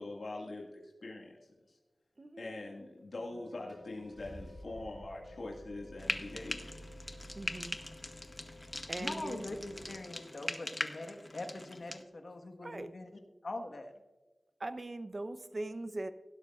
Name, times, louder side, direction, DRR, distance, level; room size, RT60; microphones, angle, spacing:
voice 1, 0.0-1.5 2.4-6.7, left 2 dB, 75° left, -2 dB, 1.8 m, -43 dB
Car / Engine starting, 3.0-3.1 3.7-9.9, equal, 20° right, 3.4 m, -53 dB
sound 1, 3.3-10.6, left 3 dB, 75° right, 2.6 m, -57 dB
Frying (food), 6.0-12.0, left 1 dB, 25° left, 0.7 m, -41 dB
voice 2, 7.4-7.8 8.9-9.5 12.6-12.9 14.6-16.1, right 2 dB, 40° right, 10 dB, 0.7 m, -40 dB
voice 3, 9.0-13.1 13.4-13.9, left 2 dB, 60° left, 4 dB, 1.3 m, -43 dB
16.0 x 12.0 x 2.4 m, 1.2 s
wide cardioid pair, 95°, 0 cm